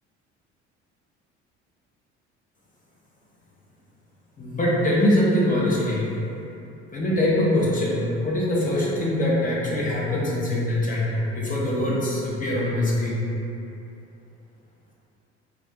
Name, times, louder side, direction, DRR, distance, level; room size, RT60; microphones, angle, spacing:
voice 1, 4.4-6.1 6.9-13.2, left 1 dB, 25° left, -6 dB, 0.8 m, -23 dB
2.3 x 2.3 x 3.7 m, 2.9 s
hypercardioid pair, 55°, 34 cm